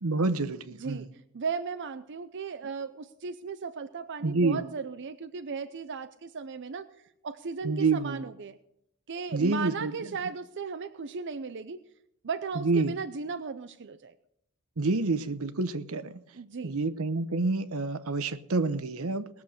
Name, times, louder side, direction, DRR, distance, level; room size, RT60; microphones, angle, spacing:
voice 1, 0.0-1.1 4.2-4.6 7.6-8.2 9.3-9.9 12.6-12.9 14.8-16.2 16.6-19.3, right 3 dB, 80° right, 12 dB, 0.9 m, -28 dB
voice 2, 0.8-8.6 9.1-11.8 12.2-14.1 16.3-16.7, right 5 dB, 55° right, 9 dB, 0.6 m, -36 dB
20.0 x 7.2 x 6.4 m, 0.78 s
head